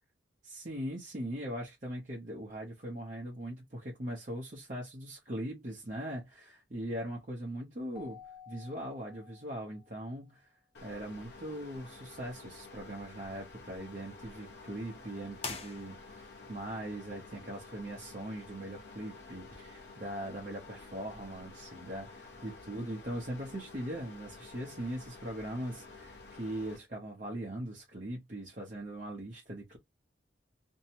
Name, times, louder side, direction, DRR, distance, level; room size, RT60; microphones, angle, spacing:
voice 1, 0.4-8.2 8.5-10.5 10.8-29.8, right 1 dB, 40° right, 0.7 m, -40 dB
Keyboard (musical), 7.9-10.2, left 8 dB, 5° right, 0.7 m, -53 dB
sound 1, 10.7-26.8, left 3 dB, 60° left, 0.8 m, -51 dB
sound 2, 15.4-16.4, left 4 dB, 30° left, 0.6 m, -42 dB
2.6 x 2.1 x 2.8 m
head